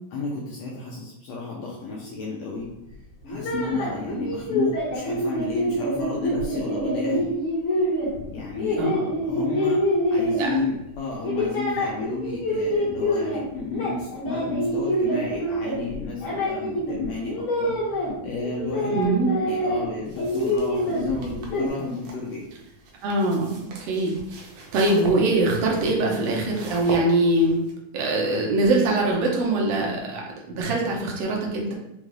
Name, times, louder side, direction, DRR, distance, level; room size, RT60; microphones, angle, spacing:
voice 1, 0.1-2.7 3.3-7.3 8.3-8.8 9.3-17.7 18.2-19.0 19.4-22.4, left 3 dB, 75° left, -3 dB, 1.7 m, -32 dB
sound 1, 3.2-10.8 11.2-13.4 13.7-18.1 18.4-19.9 20.1-21.7, equal, 55° left, 1.8 m, -26 dB
voice 2, 18.9-19.3 23.0-27.6 27.9-31.7, right 2 dB, 70° right, -2 dB, 1.5 m, -23 dB
sound 2, 20.1-27.7, right 2 dB, 90° right, 2.4 m, -40 dB
5.3 x 2.4 x 3.2 m, 0.89 s
omnidirectional pair, 3.5 m